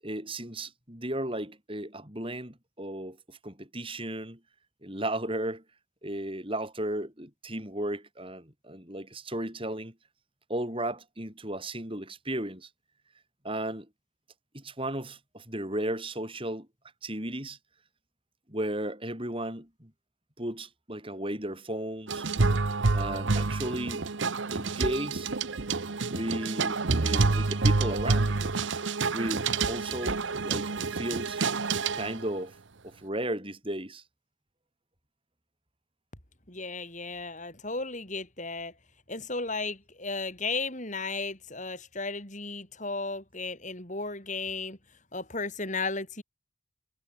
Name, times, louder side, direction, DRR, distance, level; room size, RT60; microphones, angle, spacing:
voice 1, 0.0-4.4 4.8-5.6 6.0-9.9 10.5-12.7 13.4-13.9 14.5-16.7 17.0-17.6 18.5-19.9 20.4-22.3 22.9-24.1 24.5-25.3 26.1-28.4 29.1-31.4 31.9-32.5 32.8-34.0, right 1 dB, 25° right, 7.0 m, -35 dB
sound 1, 22.1-32.3, right 3 dB, 65° right, 0.9 m, -28 dB
voice 2, 36.5-38.7 39.1-44.8 45.1-46.2, left 3 dB, 35° left, 5.2 m, -34 dB
head